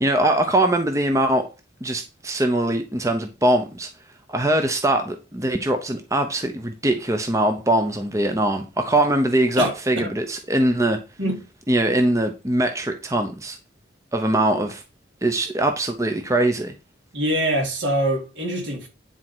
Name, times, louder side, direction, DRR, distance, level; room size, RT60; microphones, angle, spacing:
voice 1, 0.0-1.5 1.8-3.9 4.3-11.0 11.7-13.6 14.1-14.8 15.2-16.7, right 1 dB, 15° right, 0.8 m, -22 dB
voice 2, 17.1-18.9, right 1 dB, 70° right, 4.2 m, -24 dB
10.0 x 4.4 x 6.1 m
head